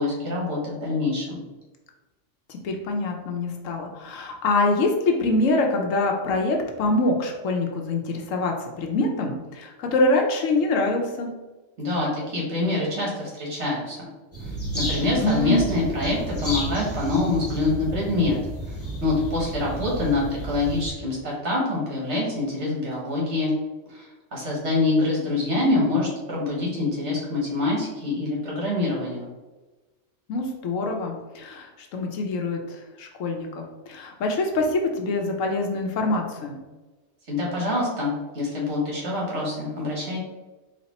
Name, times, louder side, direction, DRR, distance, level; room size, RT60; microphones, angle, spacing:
voice 1, 0.0-1.4 11.8-14.1 14.7-18.4 18.6-18.8 19.0-23.5 23.9-24.0 24.3-29.3 37.3-40.2, left 2 dB, 55° right, -4 dB, 1.6 m, -25 dB
voice 2, 2.5-11.3 15.2-15.6 30.3-36.6, left 2 dB, 75° left, 2 dB, 1.0 m, -25 dB
sound 1, 14.3-20.9, right 1 dB, 10° left, 1.1 m, -32 dB
4.2 x 2.5 x 4.1 m, 1.2 s
omnidirectional pair, 1.4 m